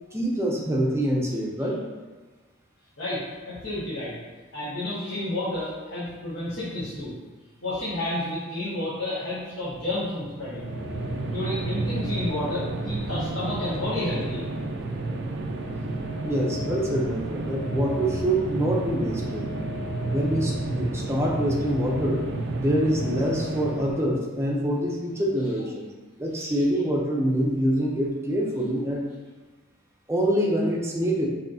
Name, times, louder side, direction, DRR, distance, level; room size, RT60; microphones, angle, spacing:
voice 1, 0.1-1.8 16.2-19.4 20.1-22.3 22.6-25.9 26.2-29.0 30.1-31.3, equal, 15° right, -2 dB, 0.6 m, -25 dB
voice 2, 3.0-4.1 4.5-7.1 7.6-10.7 11.2-14.4 26.4-26.5, left 1 dB, 65° left, -12 dB, 1.4 m, -31 dB
sound 1, 10.3-24.2, right 2 dB, 55° right, 0.4 m, -31 dB
6.3 x 2.8 x 2.7 m, 1.3 s
head